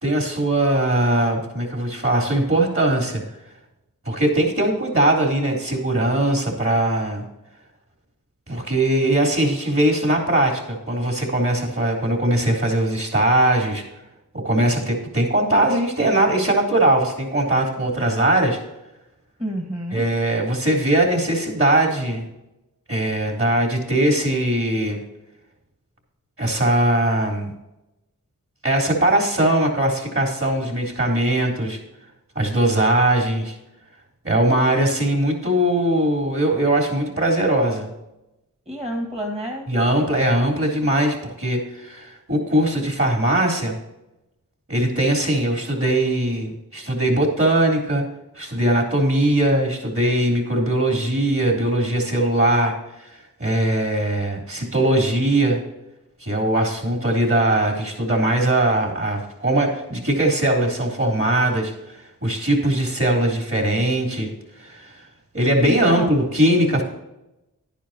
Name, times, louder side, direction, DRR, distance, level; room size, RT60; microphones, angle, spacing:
voice 1, 0.0-3.2 4.1-7.2 8.5-13.8 14.3-18.6 19.9-22.3 22.9-25.0 26.4-27.5 28.6-31.8 32.4-33.6 34.2-37.9 39.7-43.8 44.7-48.1 48.4-55.6 56.2-64.3 64.6-64.9 65.3-66.8, right 1 dB, 40° right, 0 dB, 3.8 m, -20 dB
voice 2, 19.4-20.0 38.7-39.7 65.7-66.2, equal, 20° right, 0 dB, 1.9 m, -29 dB
11.5 x 10.0 x 3.0 m, 0.93 s
cardioid pair, 50°, 34 cm